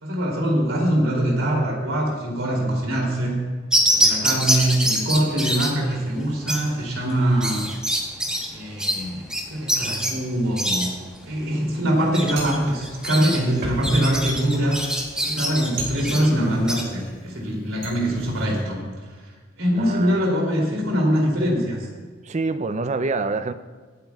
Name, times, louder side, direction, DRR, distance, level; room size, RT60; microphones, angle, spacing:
voice 1, 0.0-3.3 3.9-7.6 8.5-10.9 11.2-14.8 15.2-18.8 19.6-21.9, right 1 dB, 90° right, -1 dB, 3.0 m, -23 dB
sound 1, 3.7-16.8, equal, 5° right, 1.2 m, -25 dB
sound 2, 12.1-17.1 17.5-18.6, right 1 dB, 55° right, 2.9 m, -35 dB
voice 2, 19.8-20.2 22.2-23.5, right 3 dB, 35° right, 12 dB, 0.5 m, -26 dB
24.5 x 8.7 x 2.4 m, 1.4 s
head